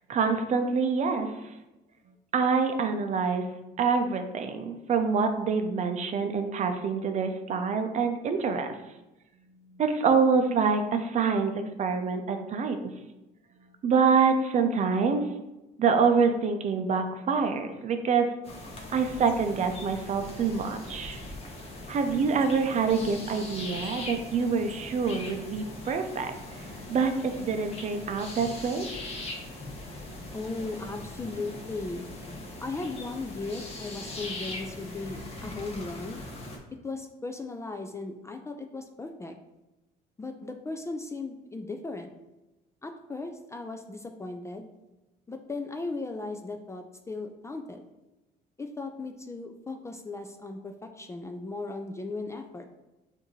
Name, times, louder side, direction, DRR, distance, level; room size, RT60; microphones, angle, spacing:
voice 1, 0.1-1.5 2.3-3.5 3.8-8.8 9.7-12.9 13.8-15.3 15.8-18.3 18.9-21.2 21.9-28.9, right 5 dB, 45° right, 6 dB, 0.5 m, -26 dB
sound 1, 18.4-36.6, left 2 dB, 35° left, 1.1 m, -41 dB
voice 2, 30.3-32.1 32.6-36.2 36.7-39.4 40.2-42.1 42.8-44.7 45.3-47.8 48.6-52.7, left 3 dB, 15° left, 5 dB, 0.3 m, -37 dB
6.2 x 2.6 x 3.1 m, 1.0 s
cardioid pair, 110°, 17 cm